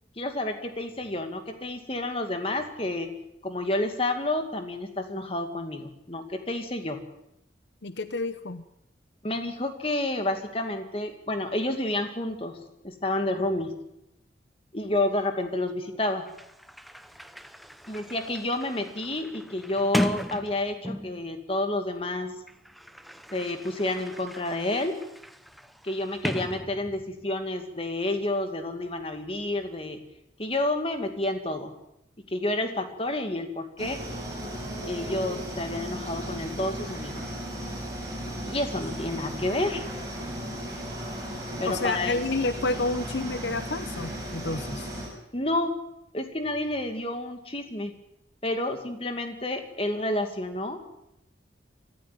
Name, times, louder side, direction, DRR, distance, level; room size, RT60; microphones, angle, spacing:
voice 1, 0.2-3.1 3.4-7.0 9.2-12.6 12.8-13.7 14.7-16.3 17.9-22.3 23.3-25.0 25.8-30.0 30.4-31.7 32.3-34.0 34.8-37.2 38.4-39.9 41.6-42.2 45.3-45.8 46.1-47.9 48.4-50.8, left 1 dB, 30° left, 6 dB, 2.4 m, -30 dB
voice 2, 7.8-8.7 41.6-44.9, left 3 dB, 70° left, 12 dB, 0.9 m, -30 dB
Sliding door, 15.9-16.0 16.3-21.3 22.2-27.2, equal, ahead, 0.8 m, -36 dB
sound 1, 33.8-45.1, equal, 20° right, 6.7 m, -36 dB
24.5 x 14.0 x 9.2 m, 0.83 s
head